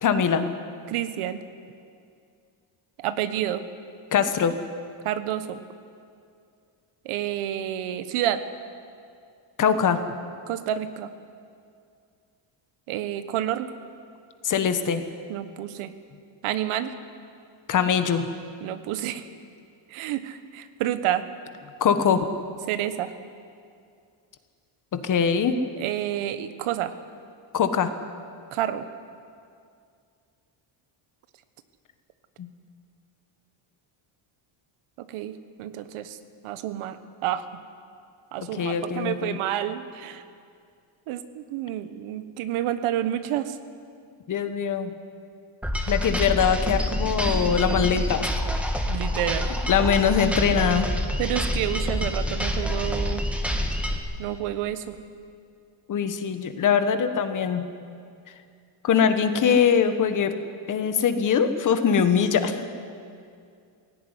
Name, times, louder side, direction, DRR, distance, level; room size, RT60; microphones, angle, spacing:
voice 1, 0.0-0.5 4.1-4.6 9.6-10.0 14.4-15.0 17.7-18.3 21.8-22.3 24.9-25.5 27.5-27.9 32.4-32.5 38.4-39.4 44.3-44.9 45.9-48.4 49.7-50.9 55.9-57.7 58.8-60.4 60.7-62.7, left 7 dB, 40° left, 9 dB, 1.4 m, -22 dB
voice 2, 0.9-1.4 3.0-3.6 5.0-5.6 7.0-8.4 10.5-11.1 12.9-13.7 15.3-15.9 16.4-16.9 18.6-19.3 19.9-21.3 22.7-23.1 25.8-26.9 28.5-28.9 35.0-36.2 36.4-37.0 37.2-37.5 38.3-40.2 41.1-43.6 48.9-49.5 50.0-50.2 51.2-53.2 54.2-54.9, right 11 dB, 85° right, 11 dB, 1.4 m, -29 dB
sound 1, 45.6-54.0, equal, 5° right, 1.4 m, -27 dB
19.5 x 16.5 x 9.9 m, 2.3 s
cardioid pair, 160°, 48 cm